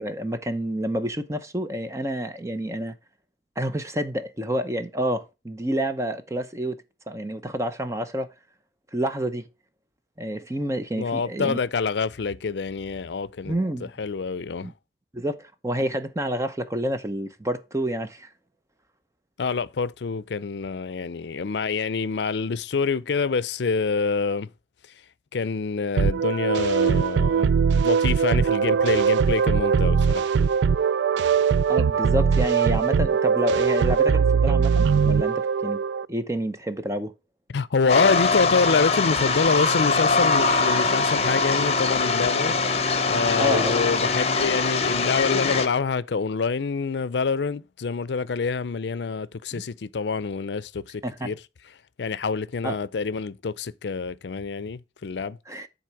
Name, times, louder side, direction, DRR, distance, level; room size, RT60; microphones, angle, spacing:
voice 1, 0.0-2.9 3.6-8.3 8.9-9.5 10.2-11.6 13.5-13.9 14.6-14.7 15.1-18.3 31.7-35.8 36.1-37.1 43.4-43.8 49.5-49.6 51.0-51.3 52.6-52.8 55.5-55.7, right 1 dB, 15° right, 0.7 m, -29 dB
voice 2, 11.0-13.5 14.0-14.7 19.4-24.5 25.3-27.5 27.8-30.3 37.5-42.6 43.1-51.3 52.0-55.4, left 5 dB, 80° left, 0.5 m, -26 dB
sound 1, 26.0-36.1, right 6 dB, 85° right, 0.3 m, -21 dB
sound 2, 37.9-45.7, left 4 dB, 35° left, 0.9 m, -22 dB
10.5 x 4.2 x 4.6 m
head